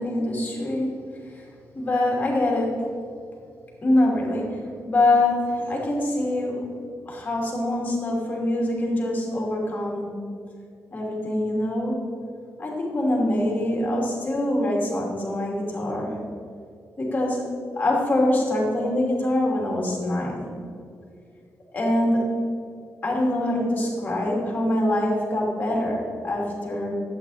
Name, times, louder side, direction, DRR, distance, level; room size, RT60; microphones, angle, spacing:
voice 1, 0.0-1.4 1.7-2.8 3.8-6.7 7.0-10.1 10.9-12.0 12.6-16.2 17.0-20.5 21.7-22.5 23.0-26.9, left 1 dB, 30° left, -2 dB, 2.8 m, -24 dB
12.5 x 8.5 x 4.2 m, 2.4 s
wide cardioid pair, 150°, 6 cm